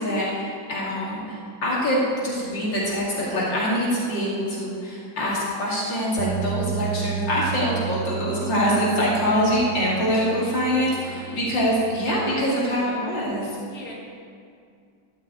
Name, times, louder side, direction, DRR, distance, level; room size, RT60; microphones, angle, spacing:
voice 1, 0.0-13.5, equal, 75° left, -6 dB, 3.1 m, -24 dB
sound 1, 6.2-12.4, right 11 dB, 70° right, 1.1 m, -33 dB
voice 2, 10.8-11.4 12.1-12.9 13.6-13.9, left 1 dB, 50° left, -6 dB, 3.0 m, -40 dB
13.0 x 6.6 x 8.5 m, 2.3 s
omnidirectional pair, 2.0 m